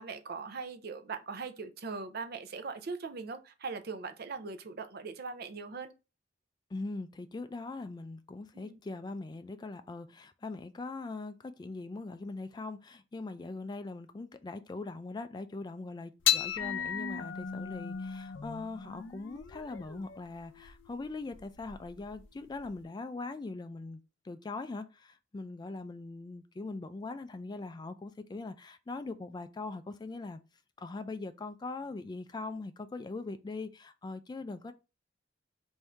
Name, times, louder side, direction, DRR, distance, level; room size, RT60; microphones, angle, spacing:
voice 1, 0.0-5.9 8.5-8.8, right 4 dB, 55° right, 0.6 m, -40 dB
voice 2, 6.7-30.4 30.8-34.7, left 3 dB, 25° left, 0.3 m, -41 dB
sound 1, 16.2-22.8, left 9 dB, 90° left, 0.5 m, -36 dB
3.6 x 2.6 x 4.3 m
head